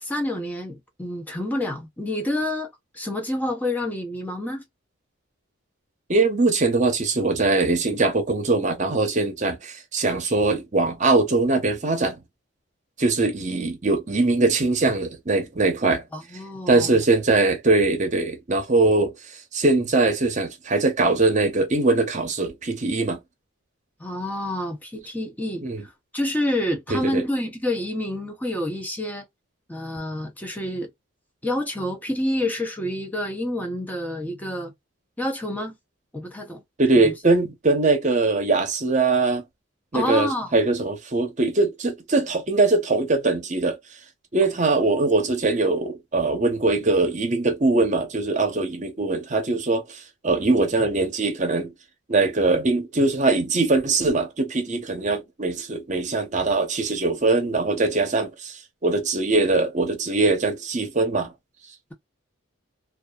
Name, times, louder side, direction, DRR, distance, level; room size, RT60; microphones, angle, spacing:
voice 1, 0.0-4.6 16.1-17.0 24.0-25.6 26.1-29.3 29.7-30.9 31.4-34.7 35.2-35.7 36.1-36.6 37.0-37.1 39.9-40.6, left 1 dB, 10° left, 0.5 m, -28 dB
voice 2, 6.1-12.2 13.0-16.0 16.7-19.1 19.5-23.2 25.6-25.8 26.9-27.2 36.8-39.4 39.9-43.8 44.3-51.7 52.1-61.3, right 3 dB, 35° right, 0.7 m, -22 dB
2.6 x 2.3 x 2.2 m
head